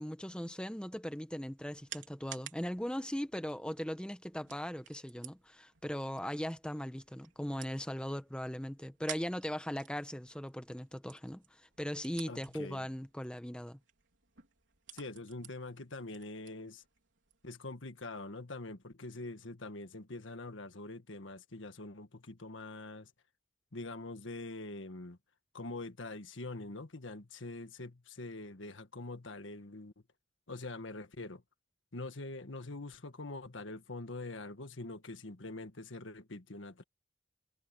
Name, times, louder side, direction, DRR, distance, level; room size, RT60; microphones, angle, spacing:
voice 1, 0.0-11.4 11.8-13.8, equal, 5° left, 1.1 m, -39 dB
sound 1, 1.1-17.5, right 11 dB, 80° right, 4.0 m, -54 dB
voice 2, 12.2-12.9 14.9-16.8 17.4-23.1 23.7-25.2 25.5-29.9 30.5-31.4 31.9-36.8, left 2 dB, 85° left, 1.6 m, -44 dB
head